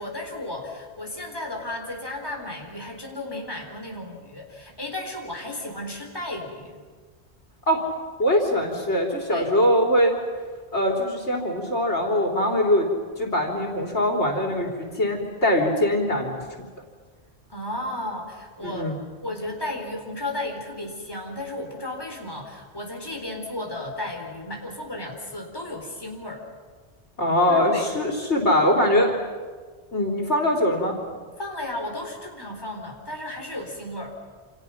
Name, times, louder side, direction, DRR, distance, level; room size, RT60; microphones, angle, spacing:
voice 1, 0.0-6.8 9.3-9.5 17.5-18.9 19.2-26.4 27.5-27.9 31.4-34.1, left 1 dB, 20° left, 1 dB, 4.0 m, -34 dB
voice 2, 8.2-10.1 10.7-12.9 13.2-16.4 18.6-19.0 27.2-29.2 29.9-31.0, left 1 dB, 85° left, 1 dB, 3.8 m, -22 dB
28.5 x 28.0 x 5.9 m, 1.5 s
omnidirectional pair, 1.1 m